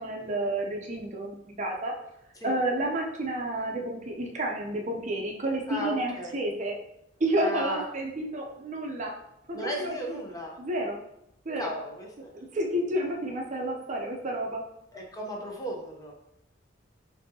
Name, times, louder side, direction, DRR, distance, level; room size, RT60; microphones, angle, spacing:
voice 1, 0.0-1.9 2.4-6.8 7.2-9.1 9.5-10.2 10.6-11.0 11.5-11.7 12.3-14.6, right 1 dB, 40° right, 1 dB, 0.6 m, -30 dB
voice 2, 5.7-6.4 7.4-7.8 9.5-10.5 11.6-12.1 14.9-16.1, equal, 20° left, 0 dB, 0.7 m, -35 dB
6.0 x 2.7 x 2.8 m, 0.79 s
head